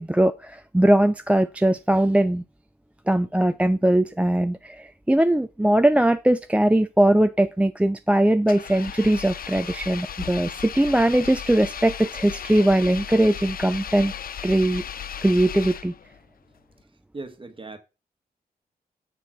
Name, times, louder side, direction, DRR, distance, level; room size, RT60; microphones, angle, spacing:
voice 1, 0.0-2.4 3.1-14.1 14.4-14.8 15.2-15.9, right 1 dB, 10° right, 0.4 m, -20 dB
Engine, 8.4-16.2, left 8 dB, 65° left, 0.5 m, -36 dB
voice 2, 17.1-17.8, right 3 dB, 30° right, 1.5 m, -37 dB
7.6 x 3.9 x 6.1 m
cardioid pair, 70°, 16 cm